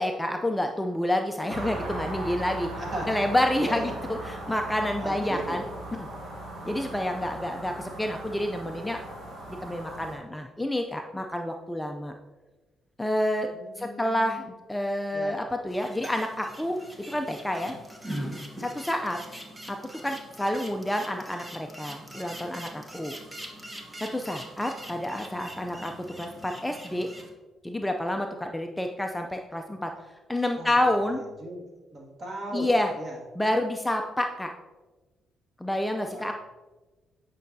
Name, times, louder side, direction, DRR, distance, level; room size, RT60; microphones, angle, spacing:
voice 1, 0.0-2.7 3.1-5.6 5.9-6.1 6.6-9.0 9.6-12.1 13.0-13.5 13.8-16.8 17.1-17.7 18.6-19.2 19.7-23.1 24.0-27.1 27.6-29.9 30.3-31.2 32.5-32.9 33.4-34.5 35.6-36.3, left 1 dB, 10° left, 4 dB, 0.4 m, -29 dB
sound 1, 1.5-10.2, right 1 dB, 60° right, 2.1 m, -38 dB
voice 2, 2.8-3.2 3.6-3.9 5.0-5.6 13.5-14.5 15.1-15.4 30.6-30.9 31.4-33.2 36.1-36.3, right 1 dB, 35° right, -3 dB, 2.0 m, -37 dB
sound 2, 15.7-27.3, right 1 dB, 15° right, 1.1 m, -42 dB
8.8 x 5.5 x 2.7 m, 1.2 s
cardioid pair, 90°, 0 cm